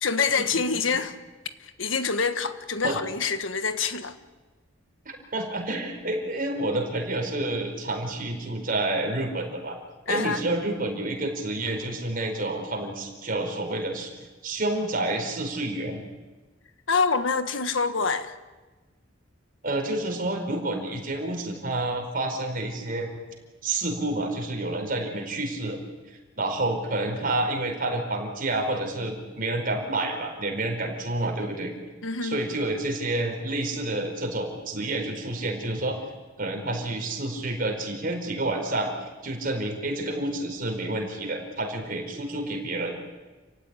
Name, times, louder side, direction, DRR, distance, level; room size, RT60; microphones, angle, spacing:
voice 1, 0.0-1.1 1.8-4.1 10.1-10.4 16.9-18.3 32.0-32.4, left 5 dB, 90° left, 1.5 m, -26 dB
voice 2, 5.3-9.8 10.1-14.1 14.4-16.0 19.6-23.1 23.6-25.8 26.4-31.7 32.2-36.0 36.4-38.9 39.2-42.9, right 2 dB, 50° right, 4.9 m, -29 dB
29.0 x 16.0 x 9.8 m
head